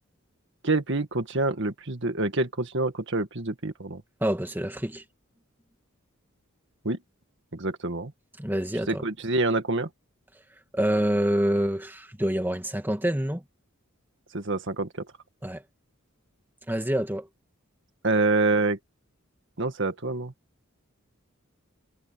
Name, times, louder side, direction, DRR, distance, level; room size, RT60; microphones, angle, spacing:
voice 1, 0.6-4.0 6.8-7.0 7.5-8.1 8.9-9.9 14.3-15.1 18.0-18.8 19.6-20.3, right 2 dB, 60° right, 1.9 m, -26 dB
voice 2, 4.2-5.0 8.4-9.0 10.7-13.4 15.4-15.6 16.7-17.3, right 1 dB, 10° right, 2.0 m, -26 dB
head